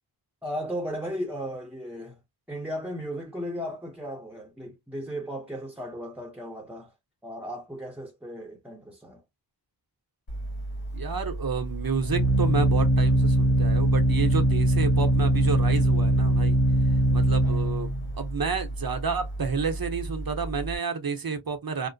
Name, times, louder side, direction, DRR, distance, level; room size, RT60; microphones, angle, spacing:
voice 1, 0.4-2.2 2.5-6.9 7.2-9.2, equal, 5° right, 0.7 m, -35 dB
Organ, 10.3-20.8, right 1 dB, 80° left, 1.6 m, -23 dB
voice 2, 10.9-16.6 17.1-21.9, right 5 dB, 50° right, 0.8 m, -30 dB
2.9 x 2.0 x 2.5 m
wide cardioid pair, 45°, 47 cm